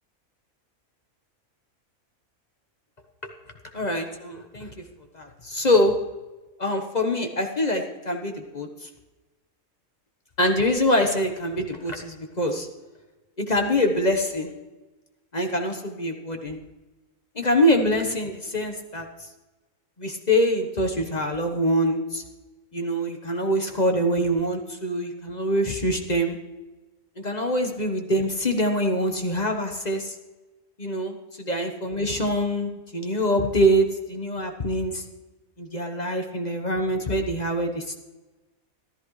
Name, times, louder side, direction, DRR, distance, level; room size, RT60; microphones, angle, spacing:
voice 1, 3.7-4.7 5.1-6.0 6.6-8.9 10.4-12.7 13.4-14.5 15.3-16.6 17.3-19.1 20.0-22.2 22.7-26.4 27.2-30.1 30.8-35.0 35.6-38.0, equal, 30° left, 4 dB, 1.2 m, -24 dB
14.0 x 13.0 x 3.2 m, 1.1 s
omnidirectional pair, 1.4 m